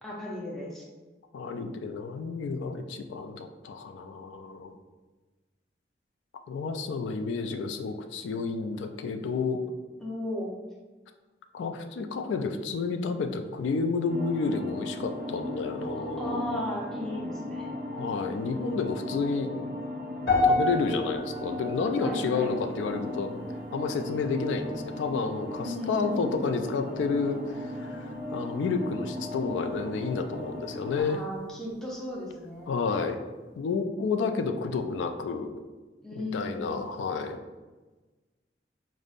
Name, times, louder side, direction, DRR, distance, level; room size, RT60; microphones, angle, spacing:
voice 1, 0.0-0.9 10.0-10.5 16.2-17.9 22.0-22.5 25.6-26.2 30.9-32.7 36.0-36.9, left 1 dB, 5° left, -4 dB, 0.6 m, -36 dB
voice 2, 1.3-4.8 6.5-9.6 11.5-16.4 17.9-19.6 20.2-23.3 23.7-31.2 32.7-33.2 33.6-35.5 36.1-37.4, left 4 dB, 85° left, 6 dB, 0.3 m, -30 dB
sound 1, 14.1-31.0, left 1 dB, 50° right, 0.5 m, -37 dB
sound 2, 20.3-24.7 24.9-25.3 26.0-26.1, left 2 dB, 60° left, 1.3 m, -30 dB
5.1 x 2.0 x 2.5 m, 1.2 s
head